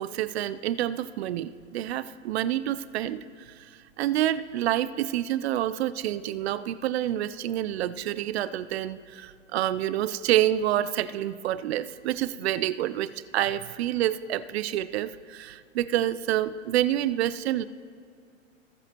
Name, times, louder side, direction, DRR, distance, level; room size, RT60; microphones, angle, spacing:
voice 1, 0.0-17.6, right 12 dB, 55° right, 15 dB, 0.5 m, -28 dB
20.5 x 7.8 x 2.9 m, 2.3 s
hypercardioid pair, 115°, 39 cm